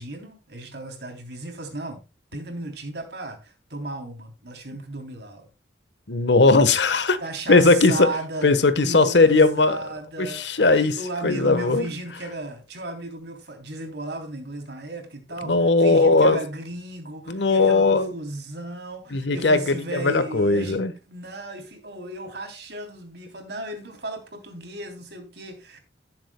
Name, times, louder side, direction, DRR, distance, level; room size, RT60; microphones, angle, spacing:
voice 1, 0.0-2.0 2.3-5.5 7.2-8.5 8.8-10.4 10.7-15.5 15.8-25.8, right 2 dB, 60° right, 3.2 m, -35 dB
voice 2, 6.1-7.2 7.5-8.1 8.4-9.8 10.2-11.0 11.2-11.9 15.4-16.4 17.3-18.1 19.1-20.9, left 3 dB, 70° left, 1.2 m, -18 dB
17.5 x 7.5 x 2.2 m
head